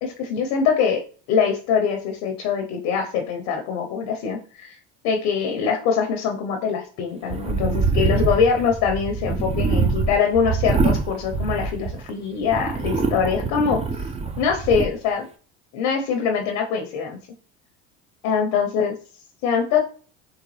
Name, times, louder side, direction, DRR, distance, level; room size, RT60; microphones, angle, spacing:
voice 1, 0.0-1.0 1.3-4.8 5.0-14.0 14.4-15.3 15.7-17.2 18.2-18.9 19.4-19.9, left 6 dB, 75° left, 3 dB, 0.8 m, -23 dB
sound 1, 7.3-12.1 12.5-14.9, right 4 dB, 20° right, 0.5 m, -24 dB
3.9 x 3.3 x 3.2 m, 0.41 s
supercardioid pair, 90°, 32 cm